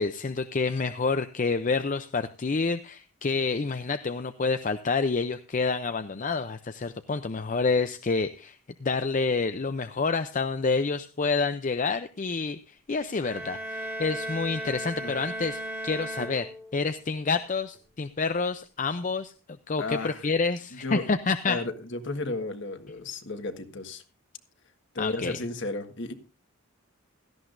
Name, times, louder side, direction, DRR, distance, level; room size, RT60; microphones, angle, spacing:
voice 1, 0.0-16.5 16.7-19.3 19.7-21.6 25.0-25.4, left 4 dB, 35° left, 10 dB, 0.5 m, -28 dB
sound 1, 13.2-17.0, equal, 10° right, 1.8 m, -36 dB
voice 2, 19.8-20.3 20.7-21.0 21.5-24.0 24.9-26.1, left 2 dB, 55° left, 8 dB, 1.5 m, -33 dB
17.0 x 13.5 x 2.6 m, 0.32 s
head